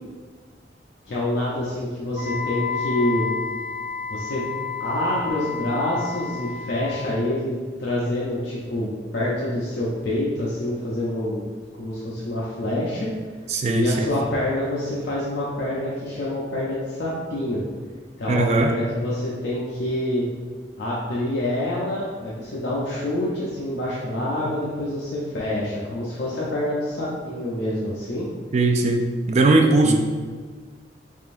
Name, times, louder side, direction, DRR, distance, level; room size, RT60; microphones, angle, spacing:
voice 1, 1.1-3.3 4.1-4.4 4.8-11.4 11.8-13.1 13.7-17.6 18.2-20.2 20.8-28.3 29.8-29.9, left 1 dB, 65° left, -6 dB, 0.5 m, -26 dB
Wind instrument woodwind instrument, 2.1-6.9, left 6 dB, 10° right, 0.8 m, -31 dB
voice 2, 13.5-14.1 18.3-18.7 28.5-29.0 29.3-29.9, right 2 dB, 35° right, 4 dB, 0.3 m, -19 dB
3.5 x 3.3 x 2.5 m, 1.5 s
head